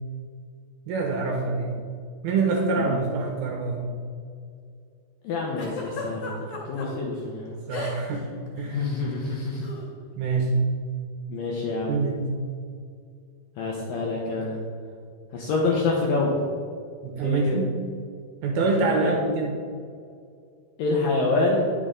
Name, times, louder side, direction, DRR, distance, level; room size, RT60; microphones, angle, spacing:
voice 1, 0.9-1.7 2.2-3.9 7.7-8.3 8.6-8.8 10.2-10.5 11.9-12.3 17.0-17.8 18.4-19.5, right 3 dB, 75° right, 1 dB, 2.4 m, -25 dB
voice 2, 5.2-7.6 8.7-9.7 11.3-12.0 13.6-14.6 15.3-16.4 17.2-17.6 19.0-19.1 20.8-21.7, left 3 dB, 75° left, -2 dB, 2.1 m, -26 dB
Giggle, 5.6-6.9 7.7-8.2 8.5-8.7 9.6-9.8, left 4 dB, 55° left, 3.4 m, -35 dB
9.9 x 6.7 x 3.7 m, 2.2 s
omnidirectional pair, 5.0 m